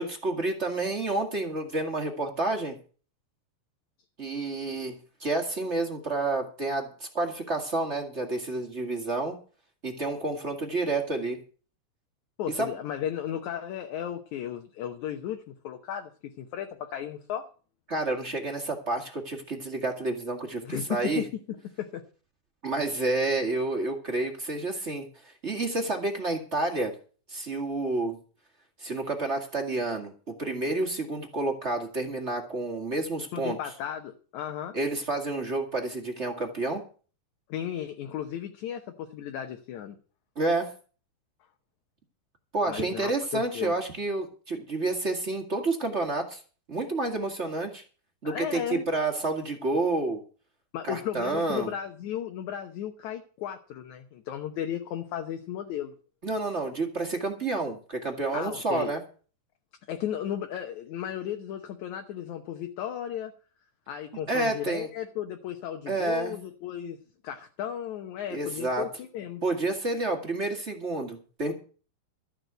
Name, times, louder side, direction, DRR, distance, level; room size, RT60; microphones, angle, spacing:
voice 1, 0.0-2.8 4.2-4.9 5.2-9.4 9.8-11.4 12.5-12.7 17.9-21.2 22.6-26.9 27.3-28.2 28.8-33.6 34.7-36.8 40.3-40.7 42.5-46.4 46.7-47.8 48.2-50.2 50.8-51.7 56.2-59.0 64.3-64.9 65.8-66.3 68.3-68.9 69.4-71.5, right 2 dB, 30° right, 3 dB, 1.3 m, -29 dB
voice 2, 12.4-16.1 16.4-17.5 20.7-21.2 21.8-22.0 33.3-34.7 37.5-40.0 42.7-43.7 48.2-48.8 50.7-55.9 58.3-58.9 59.9-63.3 63.9-67.0 67.2-69.4, left 10 dB, 65° left, 6 dB, 2.2 m, -35 dB
13.5 x 6.7 x 8.0 m, 0.39 s
omnidirectional pair, 3.9 m